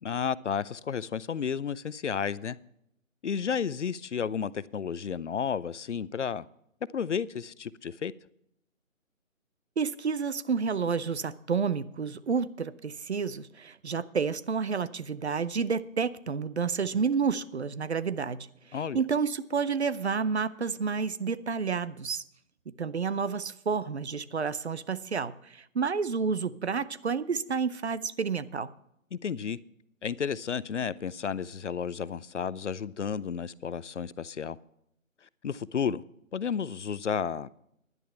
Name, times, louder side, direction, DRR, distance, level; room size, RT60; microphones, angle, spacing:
voice 1, 0.0-2.6 3.2-6.5 6.9-8.1 18.7-19.0 29.1-29.6 30.0-34.6 35.4-36.0 36.3-37.5, left 7 dB, 60° left, 0.6 m, -32 dB
voice 2, 9.8-18.5 18.9-22.2 22.8-28.7, right 5 dB, 55° right, 0.7 m, -30 dB
10.5 x 9.4 x 5.7 m
hypercardioid pair, 170°, 40 cm